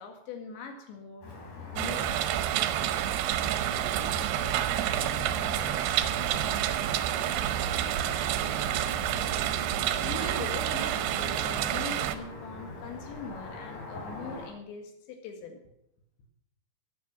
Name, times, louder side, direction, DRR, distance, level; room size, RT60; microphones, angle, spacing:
voice 1, 0.0-2.5 10.0-15.6, left 4 dB, 85° left, 4 dB, 4.4 m, -42 dB
Car passing by / Traffic noise roadway noise, 1.2-14.5, left 2 dB, 45° left, 4.8 m, -43 dB
sound 1, 1.8-12.2, right 12 dB, 80° right, 2.7 m, -29 dB
voice 2, 3.4-7.2 7.8-9.5, equal, 25° left, 1 dB, 3.2 m, -46 dB
15.5 x 9.4 x 6.1 m, 0.76 s
omnidirectional pair, 5.1 m